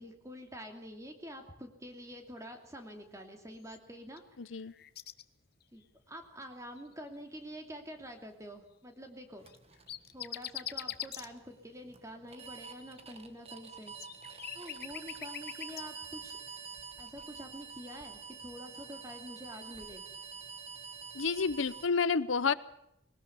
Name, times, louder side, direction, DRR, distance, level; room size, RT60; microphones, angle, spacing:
voice 1, 0.0-4.2 5.7-9.5 10.1-14.0 14.5-16.4 17.0-20.0, equal, 15° right, 4 dB, 2.7 m, -47 dB
sound 1, 3.6-4.2 4.5-5.2 5.6-5.8 6.8-7.1 9.4-11.3 12.7-15.8, left 11 dB, 50° left, 1.0 m, -43 dB
voice 2, 4.4-4.7 21.1-22.5, left 5 dB, 80° left, 16 dB, 0.8 m, -30 dB
sound 2, 9.4-21.9, right 5 dB, 30° right, 1.6 m, -48 dB
20.5 x 19.0 x 7.1 m, 0.80 s
head